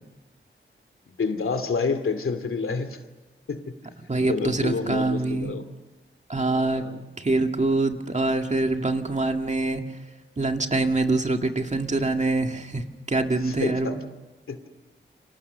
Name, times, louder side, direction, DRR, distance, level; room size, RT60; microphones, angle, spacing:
voice 1, 1.2-3.0 3.5-3.7 4.3-5.6 6.5-7.0 13.4-14.0 14.5-14.6, left 4 dB, 90° left, 9 dB, 2.5 m, -28 dB
voice 2, 4.1-5.5 6.3-6.8 7.2-9.8 10.4-14.0, right 2 dB, 35° right, 5 dB, 2.0 m, -25 dB
29.5 x 26.5 x 6.9 m, 1.1 s
wide cardioid pair, 110°, 21 cm